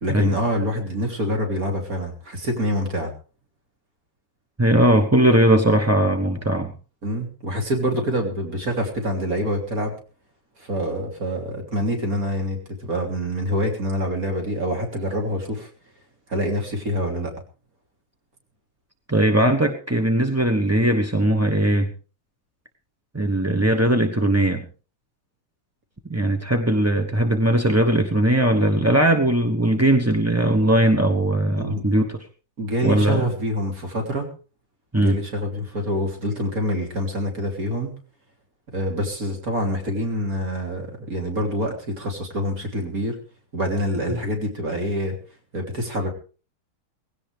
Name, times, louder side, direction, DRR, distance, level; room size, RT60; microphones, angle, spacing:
voice 1, 0.0-3.1 7.0-10.0 10.6-15.7 16.3-17.3 31.6-31.8 32.6-34.3 34.9-38.0 38.7-43.2 43.5-45.2 45.5-46.1, equal, 40° right, 2 dB, 3.7 m, -26 dB
voice 2, 4.6-6.7 19.1-21.9 23.1-24.6 26.1-32.2 32.8-33.3 34.9-35.2, right 1 dB, 20° right, 5 dB, 0.4 m, -19 dB
18.0 x 16.5 x 3.4 m, 0.35 s
omnidirectional pair, 2.3 m